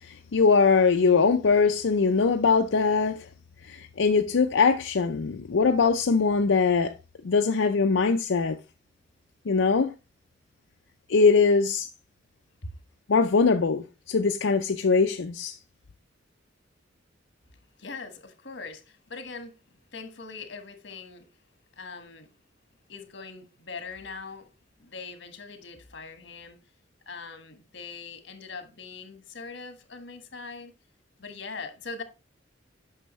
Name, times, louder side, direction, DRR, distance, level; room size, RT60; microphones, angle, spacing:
voice 1, 0.0-3.3 3.6-6.9 7.2-8.6 9.5-9.9 11.1-11.9 13.1-15.6, left 4 dB, 90° left, 0.5 m, -22 dB
voice 2, 17.8-21.3 21.8-22.3 22.9-24.5 24.8-26.6 27.1-30.7 31.2-32.0, left 4 dB, 65° left, 1.6 m, -41 dB
8.9 x 6.3 x 3.1 m
head